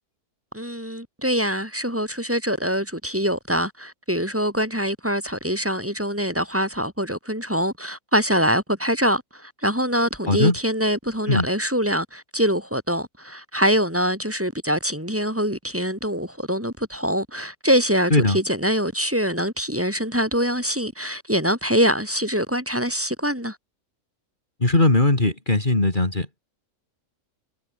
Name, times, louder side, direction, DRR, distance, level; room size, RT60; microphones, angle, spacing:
voice 1, 0.5-23.6, equal, 10° right, 7.7 m, -24 dB
voice 2, 24.6-26.3, left 2 dB, 30° left, 3.4 m, -19 dB
omnidirectional pair, 1.6 m